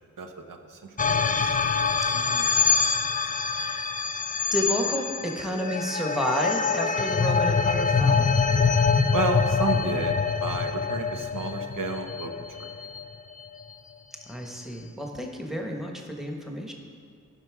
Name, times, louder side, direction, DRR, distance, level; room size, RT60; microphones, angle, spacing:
voice 1, 0.2-1.5 9.1-12.3 12.6-12.7, right 4 dB, 80° right, 4 dB, 0.8 m, -32 dB
sound 1, 1.0-13.4, left 5 dB, 25° left, 0.4 m, -25 dB
voice 2, 2.1-2.5 3.5-3.8 4.5-8.3 14.3-16.7, equal, ahead, 1 dB, 1.1 m, -31 dB
13.0 x 5.8 x 4.7 m, 2.2 s
wide cardioid pair, 95°, 32 cm